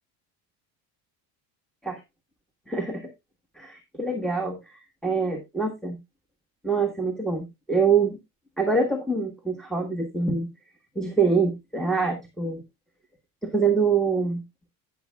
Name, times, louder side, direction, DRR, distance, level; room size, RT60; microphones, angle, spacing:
voice 1, 2.7-3.1 3.6-6.0 6.6-8.2 8.6-10.5 10.9-12.6 13.4-14.4, right 4 dB, ahead, 1 dB, 1.5 m, -25 dB
16.0 x 6.4 x 2.3 m, 0.21 s
supercardioid pair, 100°, 41 cm